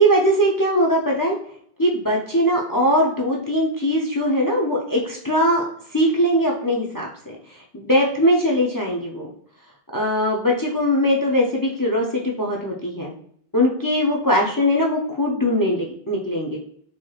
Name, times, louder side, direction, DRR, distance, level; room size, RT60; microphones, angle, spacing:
voice 1, 0.0-1.4 1.8-5.6 5.9-9.3 9.9-13.1 13.5-16.6, equal, 30° left, -1 dB, 0.4 m, -21 dB
4.3 x 3.1 x 2.3 m, 0.62 s
omnidirectional pair, 1.1 m